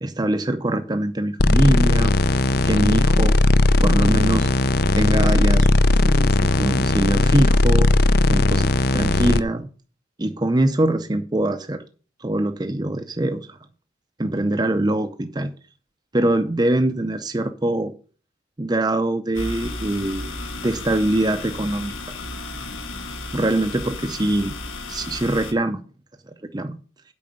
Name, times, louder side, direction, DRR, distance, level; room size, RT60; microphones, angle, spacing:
voice 1, 0.0-3.4 3.8-4.5 4.9-5.7 5.9-7.9 8.3-9.7 10.2-11.8 12.2-13.6 14.2-15.5 16.1-17.9 18.6-20.4 20.6-21.9 23.3-24.5 24.9-25.8 26.5-26.8, right 1 dB, 20° right, 7 dB, 0.6 m, -23 dB
sound 1, 1.4-9.4, left 2 dB, 50° left, 0.6 m, -17 dB
sound 2, 19.3-25.5, left 2 dB, 85° left, 1.7 m, -33 dB
8.6 x 5.6 x 7.9 m, 0.38 s
head